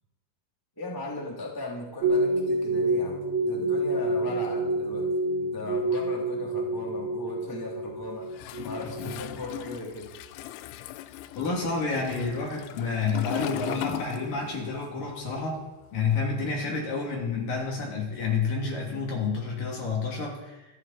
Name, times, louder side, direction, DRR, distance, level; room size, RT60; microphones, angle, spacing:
voice 1, 0.7-5.1 5.4-8.3 8.6-10.1, left 2 dB, 10° left, -2 dB, 1.4 m, -37 dB
sound 1, 2.0-9.5 9.7-9.8, right 2 dB, 65° right, 2.5 m, -28 dB
Toilet flush, 8.3-14.8 15.0-16.6, left 14 dB, 85° left, 2.7 m, -39 dB
voice 2, 8.8-9.1 11.4-15.6 15.9-20.7, left 4 dB, 45° left, -1 dB, 4.0 m, -29 dB
27.0 x 11.0 x 4.3 m, 1.0 s
omnidirectional pair, 6.0 m